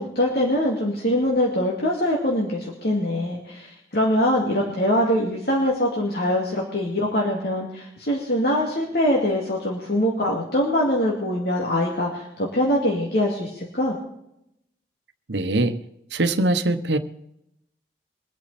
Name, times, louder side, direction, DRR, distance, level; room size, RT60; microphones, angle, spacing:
voice 1, 0.0-14.0, left 1 dB, 65° left, -2 dB, 2.6 m, -23 dB
voice 2, 15.3-15.8 16.1-17.0, right 2 dB, 85° right, 9 dB, 1.0 m, -22 dB
23.5 x 8.5 x 4.3 m, 0.79 s
head